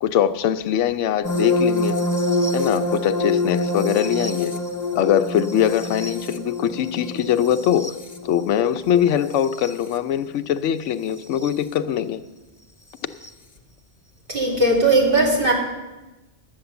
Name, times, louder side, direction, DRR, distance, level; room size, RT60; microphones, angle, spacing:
voice 1, 0.0-2.0 2.5-4.5 4.9-7.9 8.2-12.2, left 10 dB, 80° left, 11 dB, 1.0 m, -22 dB
sound 1, 1.2-9.9 11.2-11.5 13.2-13.3, left 2 dB, 20° left, 0.7 m, -26 dB
voice 2, 14.3-15.5, right 2 dB, 45° right, -2 dB, 2.7 m, -18 dB
11.5 x 8.6 x 6.9 m, 1.1 s
omnidirectional pair, 1.2 m